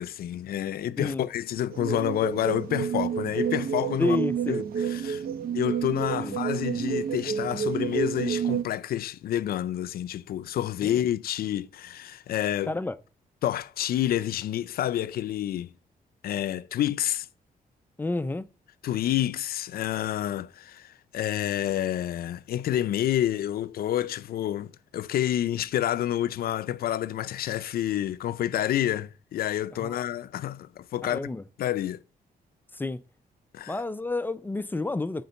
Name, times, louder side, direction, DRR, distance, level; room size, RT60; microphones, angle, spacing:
voice 1, 0.0-4.2 4.8-5.2 5.5-12.7 13.4-15.7 16.2-17.3 18.8-31.2 31.6-32.0 33.5-33.8, left 12 dB, 80° left, 0.5 m, -29 dB
voice 2, 1.0-1.3 4.0-4.6 6.2-6.4 10.8-11.0 12.7-13.0 18.0-18.5 29.8-30.0 31.0-31.4 32.7-33.0 33.7-35.2, left 2 dB, 15° left, 0.3 m, -30 dB
sound 1, 1.7-8.6, right 7 dB, 70° right, 0.8 m, -29 dB
9.4 x 3.9 x 6.8 m
wide cardioid pair, 165°, 16 cm